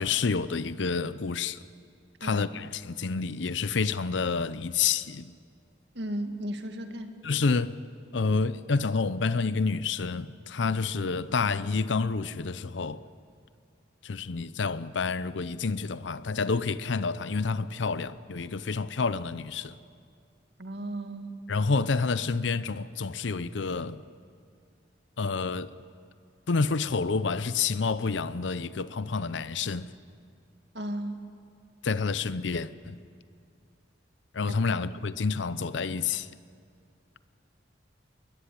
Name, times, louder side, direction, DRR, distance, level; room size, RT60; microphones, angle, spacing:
voice 1, 0.0-1.6 2.2-5.3 7.2-7.8 8.1-13.0 14.0-19.8 21.5-24.0 25.2-25.7 26.5-29.9 31.8-33.0 34.3-36.3, left 4 dB, 75° left, 0.6 m, -29 dB
voice 2, 6.0-7.1 20.6-21.3 30.7-31.2 34.5-34.6, right 1 dB, 65° right, 2.0 m, -35 dB
22.0 x 19.5 x 10.0 m
head